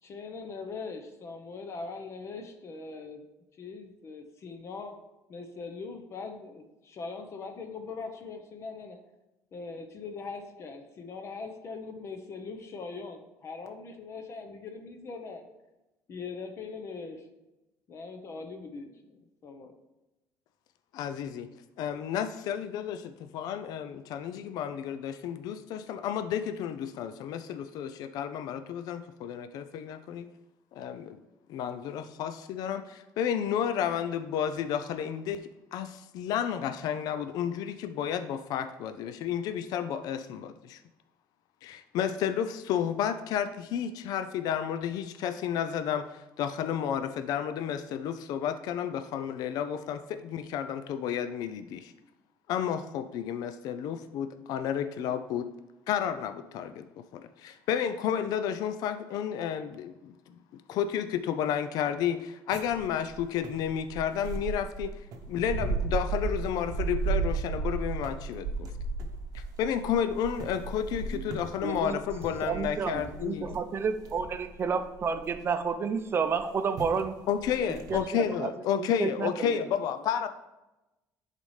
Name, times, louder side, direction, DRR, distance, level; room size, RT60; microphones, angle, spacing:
voice 1, 0.0-3.2 3.6-5.0 5.3-9.0 9.5-15.5 16.1-17.3 17.9-19.7, left 4 dB, 40° left, 6 dB, 0.8 m, -41 dB
voice 2, 20.9-21.5 21.8-30.3 30.7-31.2 31.5-40.8 41.6-51.9 52.5-55.5 55.9-56.9 57.1-64.9 65.3-68.7 69.3-73.6 77.3-80.3, left 9 dB, 70° left, 10 dB, 0.4 m, -31 dB
sound 1, 62.5-75.7 76.4-76.5 76.8-77.0 77.4-78.0, right 4 dB, 65° right, 0.8 m, -35 dB
voice 3, 71.6-72.0 72.4-77.2 77.9-78.5 78.8-79.6, right 5 dB, 35° right, 10 dB, 0.6 m, -31 dB
10.5 x 4.1 x 3.2 m, 0.99 s
cardioid pair, 120°, 7 cm